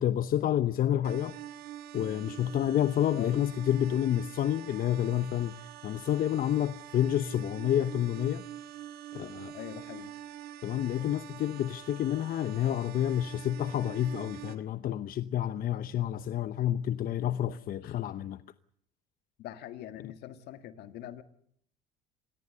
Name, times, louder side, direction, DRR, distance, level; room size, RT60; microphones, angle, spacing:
voice 1, 0.0-1.3 1.9-8.4 9.1-9.5 10.6-18.4, left 11 dB, 55° left, 0.8 m, -29 dB
sound 1, 1.0-14.6, right 12 dB, 65° right, 2.1 m, -45 dB
voice 2, 9.5-10.1 17.8-18.0 19.4-21.2, left 12 dB, 70° left, 1.8 m, -43 dB
26.5 x 18.0 x 6.8 m
supercardioid pair, 75°, 17 cm